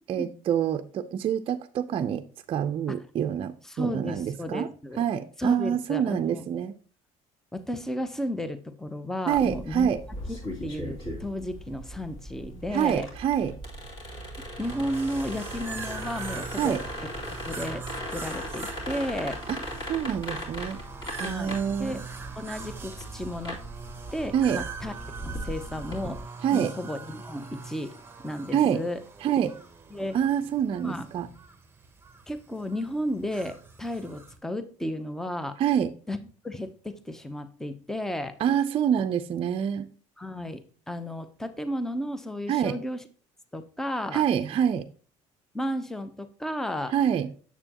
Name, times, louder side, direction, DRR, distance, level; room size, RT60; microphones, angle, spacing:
voice 1, 0.1-2.2 2.5-4.7 5.0-6.7 9.3-10.0 12.7-13.5 16.6-16.8 19.5-19.6 19.9-20.8 21.2-22.0 24.3-24.6 26.4-26.7 28.5-28.8 29.2-29.5 30.1-31.3 35.6-35.9 38.4-39.9 42.5-42.8 44.1-44.8 46.9-47.3, right 9 dB, 40° right, 0.5 m, -26 dB
voice 2, 3.7-5.0 5.4-6.4 7.5-9.9 10.3-13.1 14.6-16.8 17.5-19.4 21.2-22.0 22.4-23.6 24.1-24.9 25.2-26.2 26.5-27.9 28.2-29.0 29.9-30.2 30.8-31.1 32.3-35.6 36.1-36.2 36.4-38.4 40.2-43.0 43.5-44.2 45.5-46.9, equal, 5° left, 0.6 m, -33 dB
sound 1, 9.3-26.2, equal, 35° left, 2.5 m, -38 dB
sound 2, 14.6-34.4, right 4 dB, 15° right, 1.1 m, -43 dB
7.0 x 6.7 x 2.9 m
cardioid pair, 110°, 14 cm